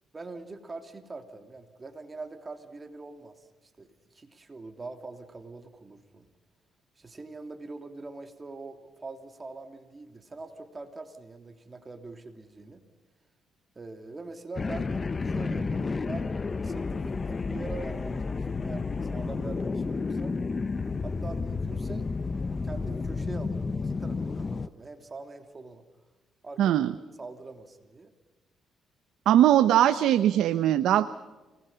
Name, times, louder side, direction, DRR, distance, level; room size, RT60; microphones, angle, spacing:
voice 1, 0.1-6.3 7.0-12.8 13.7-14.9 15.2-16.3 16.6-20.4 21.0-22.1 22.6-25.8 26.4-26.8 27.2-28.1, right 3 dB, 25° right, 6 dB, 3.0 m, -43 dB
sound 1, 14.6-24.7, left 4 dB, 30° left, 0.8 m, -31 dB
voice 2, 26.6-26.9 29.3-31.1, right 11 dB, 80° right, 11 dB, 0.8 m, -21 dB
29.0 x 20.0 x 5.7 m, 1.2 s
cardioid pair, 90°, 0 cm